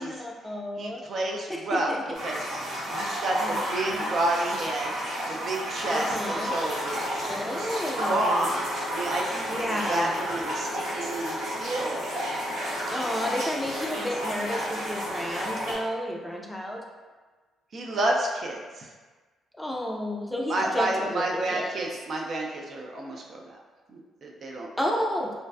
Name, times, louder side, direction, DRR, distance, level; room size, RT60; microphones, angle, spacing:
voice 1, 0.0-1.0 1.5-2.2 3.4-4.1 5.9-6.5 7.3-8.6 9.5-10.2 12.9-16.8 19.5-21.2 21.5-21.8 24.8-25.3, left 1 dB, 5° left, -1 dB, 0.5 m, -32 dB
voice 2, 0.8-1.9 2.2-2.4 2.9-4.9 5.3-7.0 7.5-8.6 8.9-9.6 9.9-12.1 17.7-18.9 20.5-23.6 23.9-24.7, right 2 dB, 55° right, -1 dB, 0.3 m, -30 dB
sound 1, 2.1-15.7, equal, 90° right, 1.2 m, -32 dB
sound 2, 5.2-16.3, left 4 dB, 80° left, 0.3 m, -51 dB
sound 3, 6.0-15.8, equal, 75° right, 0.9 m, -43 dB
2.5 x 2.2 x 2.2 m, 1.3 s
hypercardioid pair, 45°, 0 cm